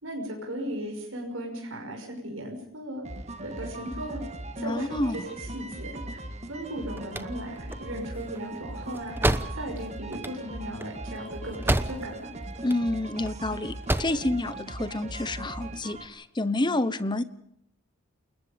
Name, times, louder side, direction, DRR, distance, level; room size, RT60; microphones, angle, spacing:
voice 1, 0.0-3.0 3.4-4.2 4.6-6.0 6.5-12.3, right 1 dB, 75° right, 1 dB, 5.8 m, -37 dB
sound 1, 3.0-16.1, right 2 dB, 35° right, 1.8 m, -39 dB
voice 2, 4.6-5.3 12.6-17.2, left 2 dB, 20° left, 14 dB, 1.0 m, -29 dB
sound 2, 6.7-12.3 12.6-13.3 13.7-14.3, right 1 dB, 10° right, 0.9 m, -30 dB
29.0 x 20.5 x 5.2 m, 0.73 s
head